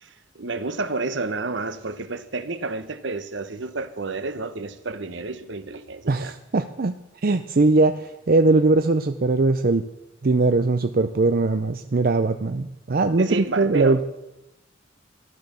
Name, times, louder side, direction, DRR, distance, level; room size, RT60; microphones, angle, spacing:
voice 1, 0.0-6.4 13.2-14.0, right 3 dB, 70° right, 1.1 m, -30 dB
voice 2, 6.1-6.9 7.2-9.8 10.2-14.0, right 3 dB, 50° right, 0.6 m, -20 dB
14.0 x 12.0 x 6.8 m
head